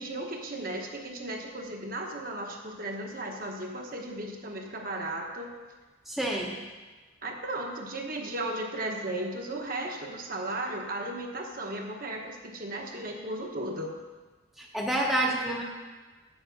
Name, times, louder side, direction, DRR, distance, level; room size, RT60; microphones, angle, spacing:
voice 1, 0.0-5.5 7.2-13.9, right 1 dB, 45° right, 1 dB, 1.0 m, -35 dB
voice 2, 6.1-6.6 14.6-15.6, right 1 dB, ahead, -2 dB, 0.7 m, -28 dB
8.2 x 7.2 x 5.2 m, 1.3 s
head